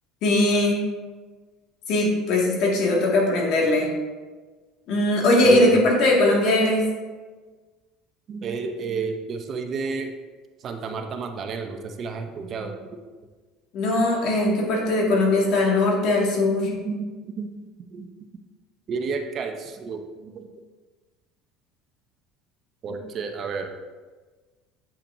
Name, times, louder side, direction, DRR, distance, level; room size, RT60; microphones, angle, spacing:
voice 1, 0.2-0.8 1.9-3.9 4.9-6.8 13.7-16.7, left 2 dB, 60° left, -2 dB, 1.9 m, -20 dB
voice 2, 5.4-5.8 8.3-10.1 10.6-13.0 16.6-17.1 17.3-17.5 17.9-18.1 18.9-20.5 22.8-23.7, right 5 dB, 40° right, 5 dB, 0.6 m, -31 dB
8.5 x 5.7 x 2.6 m, 1.3 s
cardioid pair, 125°, 0 cm